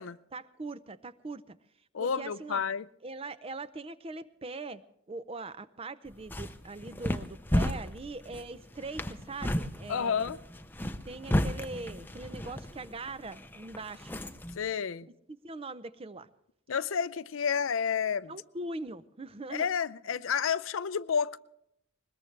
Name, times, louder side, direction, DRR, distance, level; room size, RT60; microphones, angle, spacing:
voice 1, 0.3-1.6 2.0-2.6 3.0-4.8 5.1-10.4 11.1-14.2 15.4-16.3 18.3-19.7, right 3 dB, 30° right, 0.5 m, -41 dB
voice 2, 1.9-2.9 9.9-10.4 14.5-15.1 16.7-18.3 19.5-21.4, left 7 dB, 75° left, 0.5 m, -30 dB
sound 1, 6.1-14.6, equal, 10° left, 0.6 m, -34 dB
21.0 x 20.5 x 3.3 m
head